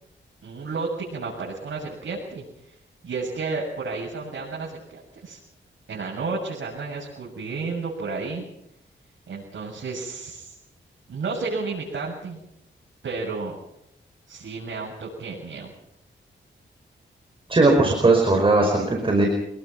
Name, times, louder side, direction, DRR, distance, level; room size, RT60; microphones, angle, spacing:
voice 1, 0.4-2.4 3.0-5.4 5.9-8.4 9.3-10.5 11.1-12.4 13.0-13.5 14.3-15.7, right 4 dB, 75° right, -4 dB, 7.6 m, -32 dB
voice 2, 17.5-19.3, right 2 dB, 25° right, 1 dB, 5.1 m, -18 dB
26.5 x 21.5 x 6.1 m, 0.82 s
wide cardioid pair, 140°, 19 cm